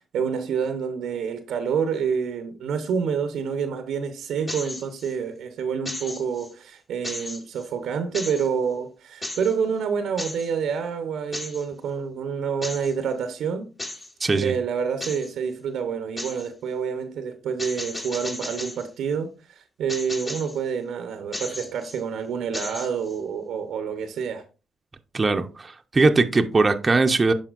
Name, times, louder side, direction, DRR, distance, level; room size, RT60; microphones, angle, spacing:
voice 1, 0.1-13.7 14.3-24.4, right 6 dB, 75° right, 0.8 m, -28 dB
sound 1, 4.5-5.1 5.9-6.5 7.0-7.7 8.1-8.5 9.2-9.6 10.2-10.5 11.3-11.7 12.6-12.9 13.8-14.1 15.0-15.3 16.2-16.5 17.6-18.9 19.9-20.6 21.3-22.0 22.5-23.2, left 1 dB, 35° left, 2.4 m, -35 dB
voice 2, 14.2-14.5 25.1-27.3, right 3 dB, 35° right, 0.7 m, -20 dB
11.5 x 4.3 x 2.4 m
supercardioid pair, 50°, 0 cm